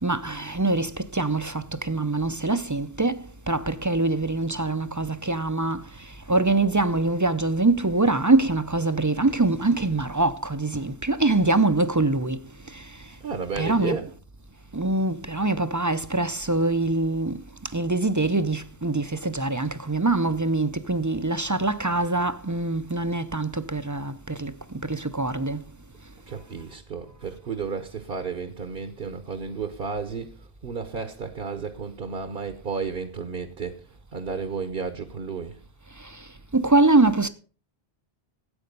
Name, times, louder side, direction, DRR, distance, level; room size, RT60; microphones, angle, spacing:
voice 1, 0.0-12.4 12.7-13.0 13.6-14.0 14.7-24.5 24.8-25.6 36.0-36.2 36.5-37.3, right 2 dB, 25° right, 0.5 m, -24 dB
voice 2, 13.2-14.1 26.3-33.8 34.1-35.6, right 5 dB, 60° right, 1.1 m, -32 dB
13.5 x 8.8 x 5.3 m
omnidirectional pair, 1.1 m